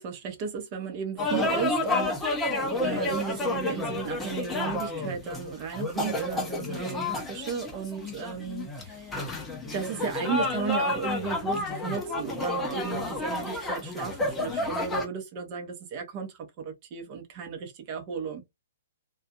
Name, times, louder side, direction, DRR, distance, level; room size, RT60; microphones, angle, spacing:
voice 1, 0.0-9.1 9.7-18.4, right 6 dB, 30° right, 0.7 m, -35 dB
sound 1, 1.2-15.1, left 2 dB, 10° left, 0.6 m, -30 dB
2.5 x 2.3 x 2.4 m
figure-of-eight pair, 120°, 0 cm